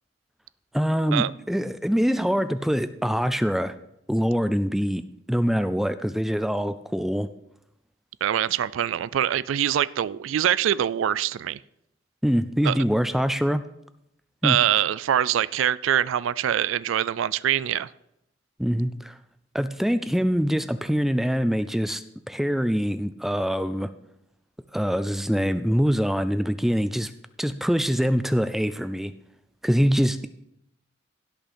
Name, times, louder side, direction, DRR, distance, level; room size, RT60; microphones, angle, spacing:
voice 1, 0.7-3.7 4.1-5.0 5.3-7.3 12.2-13.6 14.4-14.6 18.6-19.2 19.5-23.9 24.7-27.1 27.4-29.1 29.6-30.3, equal, ahead, 12 dB, 0.3 m, -24 dB
voice 2, 8.2-11.6 12.6-12.8 14.4-17.9, right 10 dB, 85° right, 19 dB, 0.3 m, -24 dB
16.5 x 5.6 x 4.3 m, 0.79 s
head